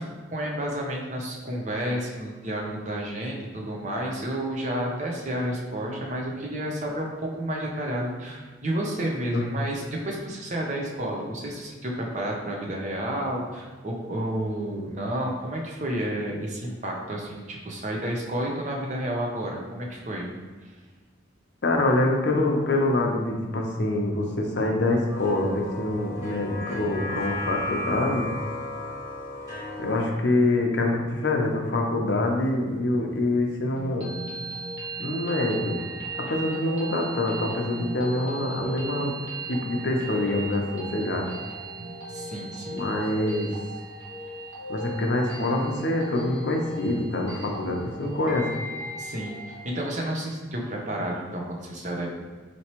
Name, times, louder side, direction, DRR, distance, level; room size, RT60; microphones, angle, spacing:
voice 1, 0.0-20.3 20.6-20.7 42.1-42.8 48.9-52.1, right 1 dB, 40° right, -1 dB, 0.7 m, -31 dB
voice 2, 21.6-28.3 29.8-34.1 35.0-35.9 36.3-39.1 39.5-41.3 42.7-43.5 44.7-48.5, left 2 dB, 65° left, 1 dB, 0.6 m, -25 dB
sound 1, 25.1-30.1, left 1 dB, 20° right, 1.0 m, -34 dB
sound 2, 33.8-49.7, right 2 dB, 70° right, 1.0 m, -37 dB
4.4 x 3.0 x 2.9 m, 1.5 s
head